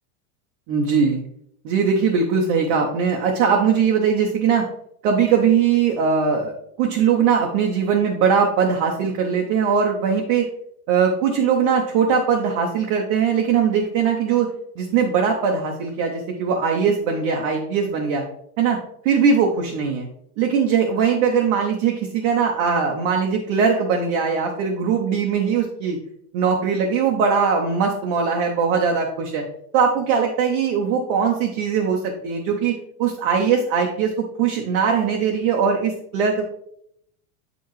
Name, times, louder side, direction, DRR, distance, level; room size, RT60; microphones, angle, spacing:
voice 1, 0.7-1.2 1.6-4.6 5.0-6.5 6.8-10.5 10.9-14.5 14.8-18.2 18.6-18.8 19.0-20.1 20.4-26.0 26.3-29.4 29.7-34.1 34.4-36.5, right 6 dB, 25° right, 1 dB, 0.4 m, -20 dB
8.1 x 4.6 x 3.0 m, 0.72 s
supercardioid pair, 160°, 46 cm